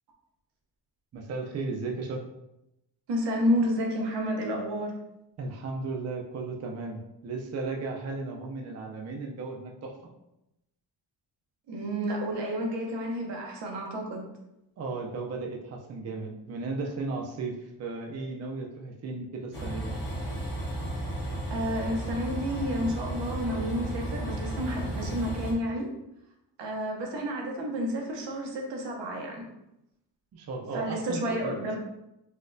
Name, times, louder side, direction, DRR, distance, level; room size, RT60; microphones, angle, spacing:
voice 1, 1.1-2.2 5.4-10.1 14.8-19.9 30.3-31.6, right 3 dB, 40° right, 1 dB, 0.4 m, -35 dB
voice 2, 3.1-4.9 11.7-14.3 21.5-25.9 26.6-29.4 30.7-31.8, equal, 90° right, 0 dB, 0.8 m, -30 dB
Train, 19.5-25.5, right 1 dB, 30° left, 1.1 m, -34 dB
4.1 x 2.2 x 2.5 m, 0.87 s
wide cardioid pair, 130°, 41 cm